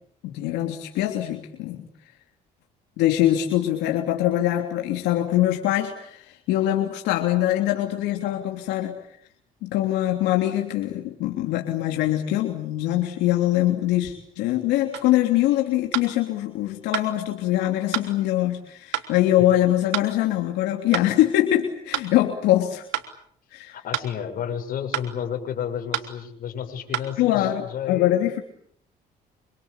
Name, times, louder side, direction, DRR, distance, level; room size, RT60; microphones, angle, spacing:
voice 1, 0.2-1.8 3.0-9.0 9.6-22.9 23.5-23.7 27.2-28.4, left 13 dB, 90° left, 3 dB, 3.2 m, -23 dB
sound 1, 14.9-15.1 15.9-16.1 16.9-17.1 17.9-18.1 18.9-19.1 19.9-20.1 20.9-21.1 21.9-22.1 22.9-23.1 23.9-24.1 24.9-25.1 25.9-26.1 26.9-27.1, right 13 dB, 85° right, 3.5 m, -28 dB
voice 2, 23.7-28.2, left 8 dB, 60° left, 5 dB, 7.1 m, -31 dB
27.0 x 26.5 x 8.3 m, 0.66 s
cardioid pair, 110°, 17 cm